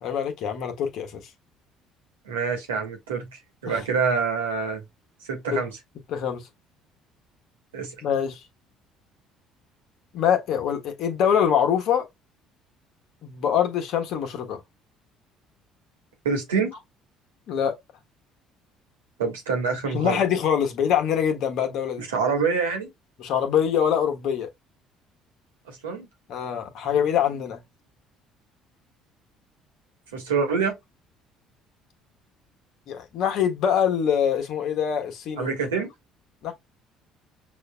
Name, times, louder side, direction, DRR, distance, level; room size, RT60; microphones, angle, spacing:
voice 1, 0.0-1.2 3.7-3.8 5.5-5.6 6.1-6.5 8.0-8.4 10.1-12.1 13.2-14.6 17.5-17.8 19.9-22.1 23.2-24.5 26.3-27.6 32.9-35.5 36.4-36.5, left 8 dB, 60° left, 1.2 m, -24 dB
voice 2, 2.2-4.8 5.3-5.7 7.7-7.9 16.2-16.7 19.2-20.2 22.0-22.9 25.7-26.1 30.1-30.7 35.4-35.9, right 5 dB, 85° right, 1.5 m, -26 dB
6.2 x 2.6 x 2.3 m
hypercardioid pair, 60°, 0 cm